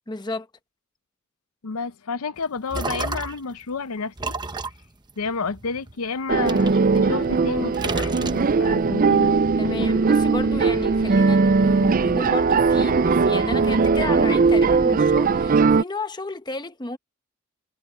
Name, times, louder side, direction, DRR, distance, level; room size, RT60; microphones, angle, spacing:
voice 1, 0.1-0.5 9.6-17.0, left 2 dB, 20° left, 1.0 m, -32 dB
voice 2, 1.6-4.4 5.2-9.4, left 4 dB, 90° left, 0.7 m, -30 dB
sound 1, 2.4-3.5 4.2-5.9 6.5-7.4 7.7-8.9, right 3 dB, 20° right, 0.9 m, -32 dB
sound 2, 6.3-15.8, right 4 dB, 40° right, 0.4 m, -19 dB
head